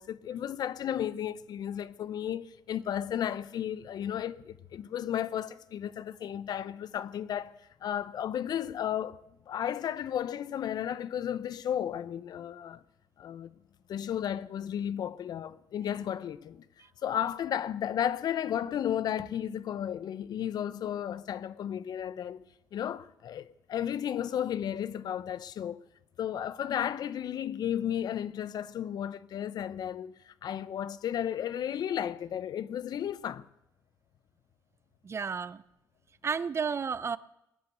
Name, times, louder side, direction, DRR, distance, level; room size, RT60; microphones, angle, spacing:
voice 1, 0.0-9.2 9.5-12.8 13.2-13.5 13.9-16.6 17.0-22.4 22.7-25.8 26.2-33.5, left 10 dB, 70° left, 0.7 m, -33 dB
voice 2, 35.0-35.6 36.2-37.2, right 6 dB, 40° right, 0.5 m, -32 dB
20.0 x 8.6 x 7.9 m
cardioid pair, 100°, 7 cm